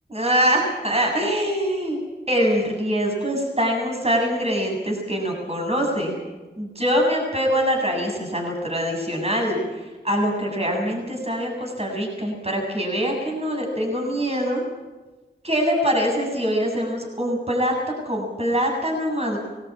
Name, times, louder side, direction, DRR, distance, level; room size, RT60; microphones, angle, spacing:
voice 1, 0.1-2.0 2.3-6.2 6.6-14.6 15.4-17.7 18.0-19.4, equal, 35° right, 1 dB, 7.7 m, -24 dB
21.0 x 17.5 x 8.8 m, 1.2 s
cardioid pair, 45°, 19 cm